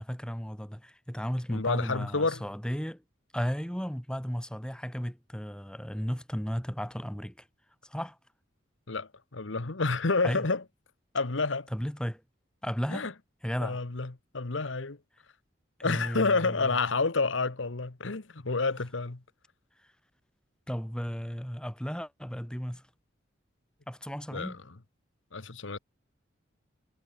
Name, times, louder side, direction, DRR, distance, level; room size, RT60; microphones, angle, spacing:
voice 1, 0.0-3.0 3.3-7.5 7.8-8.2 10.2-10.4 11.7-12.2 12.6-13.1 13.4-13.8 15.8-16.7 20.7-22.8 23.9-24.6, equal, 5° left, 2.3 m, -34 dB
voice 2, 1.5-2.4 8.9-10.6 11.1-11.7 12.9-13.1 13.6-15.0 15.8-19.2 24.3-24.6 25.3-25.8, left 3 dB, 70° left, 1.2 m, -29 dB
head